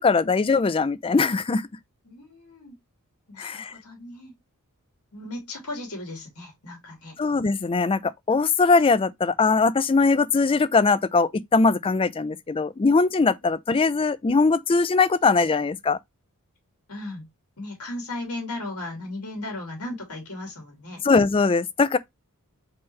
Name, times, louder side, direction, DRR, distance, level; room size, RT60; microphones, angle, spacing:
voice 1, 0.0-1.7 3.4-3.7 7.2-16.0 21.0-22.0, left 4 dB, 25° left, 0.4 m, -21 dB
voice 2, 2.0-2.7 3.3-4.3 5.1-7.2 16.9-17.3 17.6-21.0, left 2 dB, 85° left, 2.5 m, -36 dB
4.3 x 3.8 x 3.1 m
head